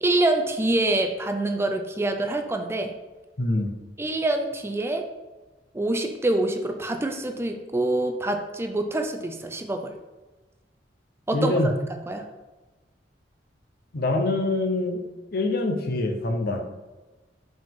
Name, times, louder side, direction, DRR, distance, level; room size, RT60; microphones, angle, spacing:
voice 1, 0.0-2.9 4.0-5.0 5.7-9.9 11.3-11.7 12.1-12.2, right 2 dB, 15° right, 5 dB, 0.4 m, -25 dB
voice 2, 3.4-3.7 11.3-11.7 13.9-15.0 15.3-16.6, left 2 dB, 60° left, 4 dB, 0.8 m, -24 dB
5.5 x 5.2 x 3.6 m, 1.2 s
head